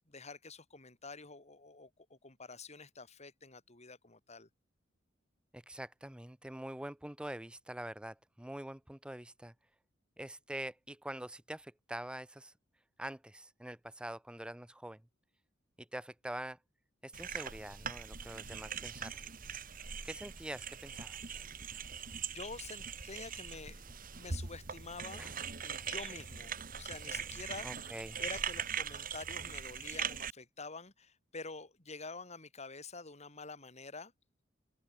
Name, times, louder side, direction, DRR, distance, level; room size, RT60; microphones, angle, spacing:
voice 1, 0.0-4.5 22.0-23.8 24.2-25.3 25.6-27.7 28.2-34.1, left 4 dB, 35° left, 3.8 m, -48 dB
voice 2, 5.5-9.5 10.2-12.5 13.0-15.0 15.8-16.6 17.0-19.2 20.0-21.2 25.2-25.3 27.6-28.2, right 1 dB, 5° right, 0.5 m, -45 dB
sound 1, 17.1-30.3, right 7 dB, 45° right, 1.8 m, -41 dB
open air
head